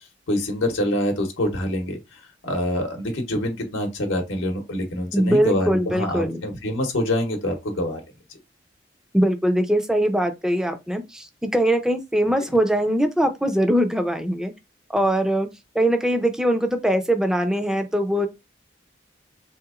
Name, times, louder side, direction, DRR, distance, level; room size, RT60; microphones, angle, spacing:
voice 1, 0.3-2.0 2.4-8.0 12.4-12.5, left 1 dB, 85° left, 0.8 m, -25 dB
voice 2, 5.1-6.4 9.1-14.5 14.9-15.5 15.7-18.3, right 1 dB, 5° right, 0.3 m, -21 dB
3.4 x 2.9 x 2.3 m
head